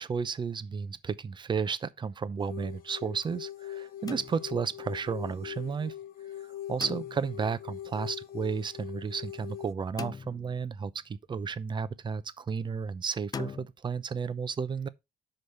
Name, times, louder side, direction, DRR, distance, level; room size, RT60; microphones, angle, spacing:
voice 1, 0.0-5.9 6.7-13.6 13.8-14.9, right 6 dB, 25° right, 0.6 m, -33 dB
sound 1, 2.4-9.7, left 11 dB, 55° left, 0.9 m, -42 dB
sound 2, 4.1-4.8 6.8-7.5 10.0-10.9 13.3-13.7, left 6 dB, 25° left, 0.4 m, -41 dB
6.3 x 5.1 x 5.5 m
cardioid pair, 110°, 17 cm